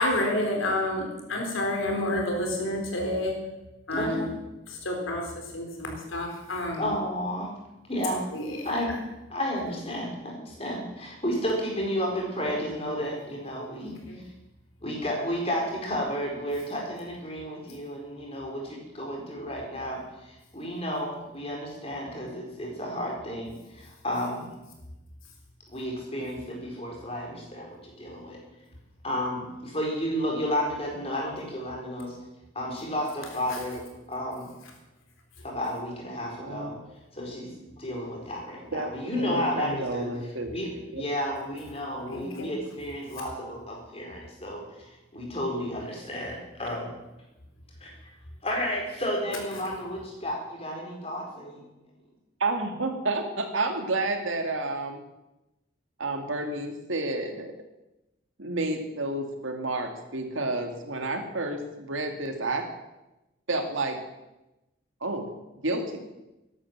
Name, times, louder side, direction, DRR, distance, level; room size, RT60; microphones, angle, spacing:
voice 1, 0.0-3.3 3.9-4.3 4.7-6.9 8.3-8.7 13.8-14.2 33.5-33.6 42.1-42.5, left 1 dB, 85° left, 2 dB, 3.9 m, -29 dB
voice 2, 3.9-4.3 6.8-7.5 7.9-8.2 8.6-8.9 9.3-13.9 14.8-24.5 25.7-28.4 29.0-32.1 32.5-34.5 35.4-36.7 37.1-40.1 40.5-46.9 48.4-51.6, equal, 30° left, -1 dB, 4.6 m, -32 dB
voice 3, 38.7-40.5 40.9-41.1 52.4-55.0 56.0-57.5 58.4-62.6 63.5-64.0 65.0-65.3 65.6-66.1, right 2 dB, 80° right, 5 dB, 2.3 m, -30 dB
13.5 x 11.0 x 7.4 m, 0.98 s
head